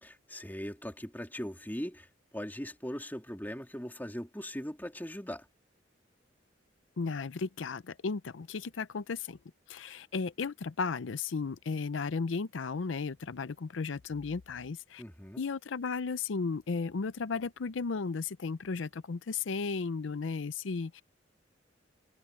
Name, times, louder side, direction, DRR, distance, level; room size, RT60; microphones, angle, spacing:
voice 1, 0.0-5.5 15.0-15.4, equal, 10° left, 2.7 m, -40 dB
voice 2, 7.0-9.4 9.7-15.0 15.4-21.0, left 4 dB, 85° left, 0.6 m, -34 dB
head